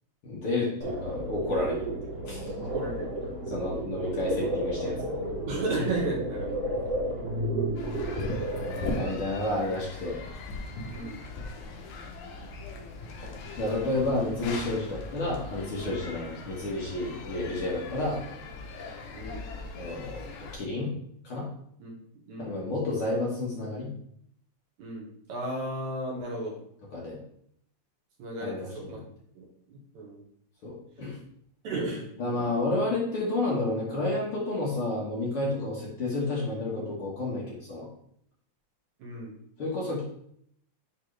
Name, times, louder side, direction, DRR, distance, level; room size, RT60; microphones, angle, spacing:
voice 1, 0.2-1.8 2.3-2.5 3.5-5.2 8.9-10.2 13.6-18.2 19.8-20.9 21.2-21.5 22.4-23.9 26.9-27.2 28.4-29.0 30.6-31.2 32.2-37.9 39.6-40.0, left 2 dB, 50° left, -5 dB, 2.0 m, -30 dB
sound 1, 0.8-9.1, right 1 dB, 55° right, 2.3 m, -32 dB
voice 2, 2.6-3.1 5.5-6.6 10.9-11.2 19.1-19.5 21.8-21.9 22.3-22.6 24.8-26.5 28.2-29.0 29.4-30.2 31.6-32.4 39.0-39.4, right 2 dB, 70° right, -3 dB, 2.9 m, -34 dB
sound 2, 7.8-20.6, left 2 dB, 75° left, 2.3 m, -39 dB
8.8 x 3.7 x 3.3 m, 0.67 s
omnidirectional pair, 3.5 m